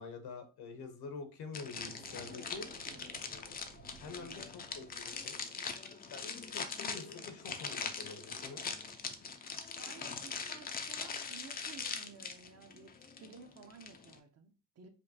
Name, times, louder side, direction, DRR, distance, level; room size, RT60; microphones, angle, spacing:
voice 1, 0.0-2.7 4.0-5.4 6.1-8.7, left 4 dB, 80° left, 1.0 m, -47 dB
sound 1, 1.5-14.2, left 5 dB, 25° left, 0.4 m, -42 dB
sound 2, 1.7-5.5, right 6 dB, 75° right, 0.7 m, -57 dB
voice 2, 9.8-12.9 13.2-14.9, right 5 dB, 40° right, 0.6 m, -54 dB
5.1 x 2.4 x 2.7 m
cardioid pair, 145°, 38 cm